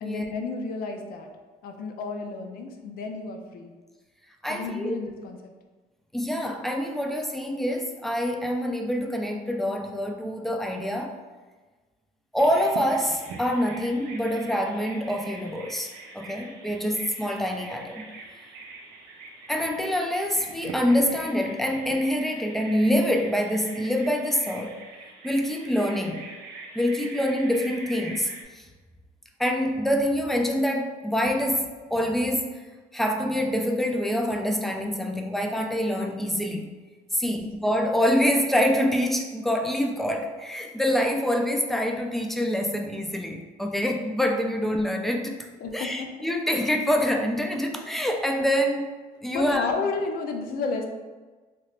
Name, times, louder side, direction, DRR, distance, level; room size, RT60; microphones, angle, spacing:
voice 1, 0.0-1.3 1.6-3.7 4.5-5.5 37.2-37.4 45.6-46.1 49.3-50.9, left 4 dB, 60° left, 4 dB, 0.5 m, -32 dB
voice 2, 4.4-5.0 6.1-11.1 12.3-18.1 19.5-24.8 25.2-26.3 26.7-28.7 29.4-32.6 32.9-36.7 37.1-48.9 49.2-49.7, equal, ahead, 3 dB, 0.3 m, -26 dB
Bird vocalization bird call bird song, 12.4-28.4, right 3 dB, 80° right, 0.5 m, -43 dB
2.9 x 2.4 x 3.2 m, 1.3 s
cardioid pair, 110°, 17 cm